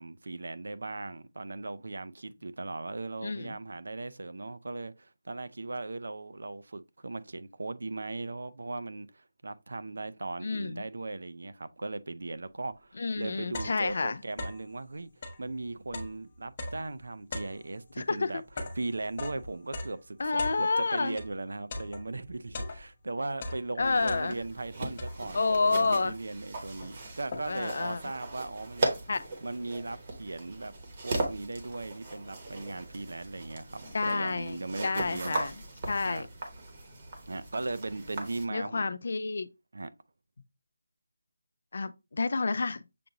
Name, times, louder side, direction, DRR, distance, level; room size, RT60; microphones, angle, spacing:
voice 1, 0.0-15.1 15.4-18.4 18.8-28.9 29.4-30.7 31.0-35.4 36.1-36.2 37.3-38.9 39.7-39.9, right 2 dB, 70° right, 0.5 m, -38 dB
voice 2, 3.2-3.6 10.4-10.8 13.0-14.2 18.0-18.3 20.2-21.2 23.8-24.3 25.3-26.2 27.5-28.0 29.1-29.3 33.9-35.5 35.9-36.3 38.5-39.5 41.7-42.8, left 3 dB, 50° left, 0.4 m, -29 dB
sound 1, 12.6-12.7 13.1-14.8 15.1-21.4 21.7-23.1 23.4-24.6 25.0-25.5 26.1-26.2 26.5-27.8, left 2 dB, 30° left, 0.8 m, -41 dB
sound 2, 23.8-38.5, right 2 dB, 25° right, 0.9 m, -38 dB
6.7 x 2.6 x 2.8 m
figure-of-eight pair, 170°, 0 cm